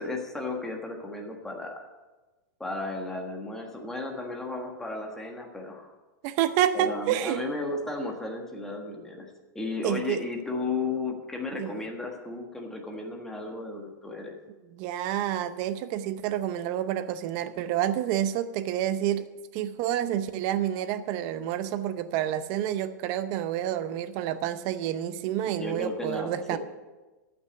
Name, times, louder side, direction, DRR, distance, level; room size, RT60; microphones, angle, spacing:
voice 1, 0.0-1.8 2.6-5.9 6.7-9.3 9.5-14.3 25.6-26.6, left 3 dB, 5° left, 1 dB, 1.5 m, -34 dB
voice 2, 6.2-7.4 9.8-10.2 11.6-11.8 14.8-19.3 19.5-26.6, right 11 dB, 35° right, 12 dB, 0.7 m, -29 dB
13.5 x 6.1 x 8.1 m, 1.2 s
supercardioid pair, 165°, 10 cm